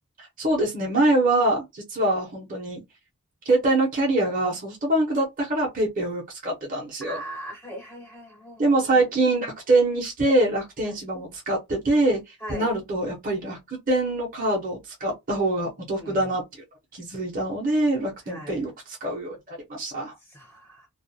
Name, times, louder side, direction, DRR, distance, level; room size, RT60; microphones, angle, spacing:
voice 1, 0.2-2.8 3.4-7.2 8.6-13.6 13.9-16.4 16.9-20.1, right 2 dB, 35° right, 0.8 m, -24 dB
voice 2, 7.0-9.1 10.8-11.0 12.4-12.7 16.0-16.3 18.3-18.6 20.2-20.9, equal, 5° left, 0.6 m, -40 dB
2.4 x 2.1 x 2.7 m
head